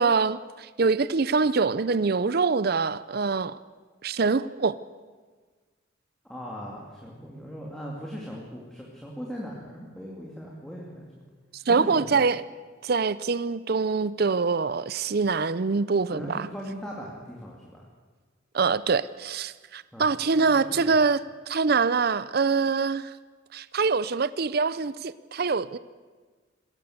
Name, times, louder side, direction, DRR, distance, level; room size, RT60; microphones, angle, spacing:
voice 1, 0.0-3.6 4.0-4.7 11.5-12.4 12.8-16.5 18.5-21.2 21.5-23.1 23.5-25.8, right 4 dB, 50° right, 0.5 m, -24 dB
voice 2, 6.2-11.0 11.7-12.2 16.1-17.9 19.9-20.1 20.4-20.9, equal, 5° left, 2.6 m, -39 dB
21.0 x 17.0 x 8.0 m
head